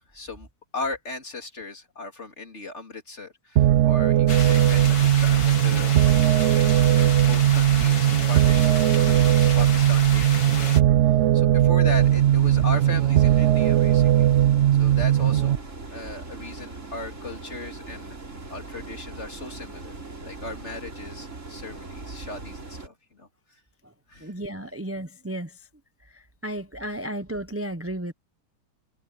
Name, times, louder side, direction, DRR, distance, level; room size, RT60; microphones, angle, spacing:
voice 1, 0.1-0.5 0.7-6.4 6.9-10.8 11.3-14.5 14.8-15.6 15.9-18.2 18.5-23.6 24.1-24.3, left 2 dB, 40° left, 3.5 m, -37 dB
sound 1, 3.6-15.6, right 12 dB, 85° right, 0.6 m, -19 dB
sound 2, 4.3-10.8, left 4 dB, 65° left, 2.7 m, -33 dB
sound 3, 11.8-22.9, right 3 dB, 45° right, 3.7 m, -40 dB
voice 2, 24.2-25.7 26.0-28.1, right 1 dB, 15° right, 0.4 m, -34 dB
omnidirectional pair, 1.8 m